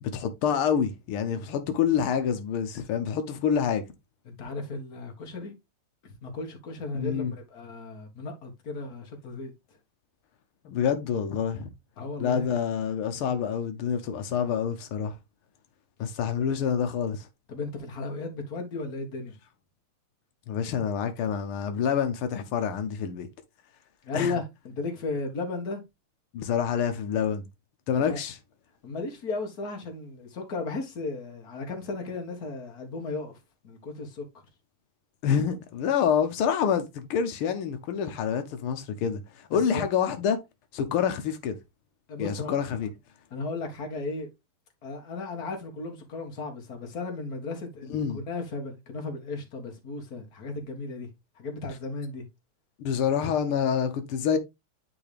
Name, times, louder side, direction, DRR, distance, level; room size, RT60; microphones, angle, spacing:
voice 1, 0.0-3.8 6.9-7.3 10.7-11.7 12.2-15.1 16.0-17.3 20.5-23.3 24.1-24.4 26.3-27.4 27.9-28.4 35.2-40.4 40.7-41.6 42.2-42.9 47.9-48.2 52.8-54.4, left 7 dB, 85° left, 1.7 m, -27 dB
voice 2, 4.3-5.5 6.0-9.5 12.0-12.6 17.5-19.3 24.0-25.8 28.0-28.2 28.8-33.4 33.6-34.2 39.5-39.8 42.1-42.6 43.3-44.3 44.8-51.1 51.4-52.2, left 3 dB, 45° left, 2.0 m, -35 dB
9.6 x 3.9 x 3.3 m
omnidirectional pair, 2.3 m